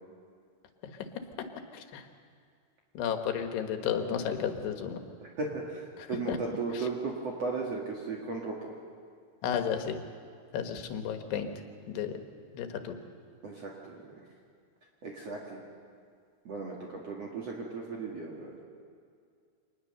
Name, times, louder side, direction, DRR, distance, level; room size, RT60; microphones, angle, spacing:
voice 1, 1.7-2.1 3.0-5.0 6.0-6.4 6.7-6.9 9.4-10.0 10.5-11.5 11.9-12.2 12.5-13.0, left 8 dB, 85° left, 6 dB, 3.6 m, -33 dB
voice 2, 5.4-8.7 13.4-14.2 15.0-15.6 16.4-18.5, right 4 dB, 45° right, -2 dB, 2.6 m, -36 dB
25.0 x 20.0 x 6.7 m, 2.3 s
omnidirectional pair, 4.6 m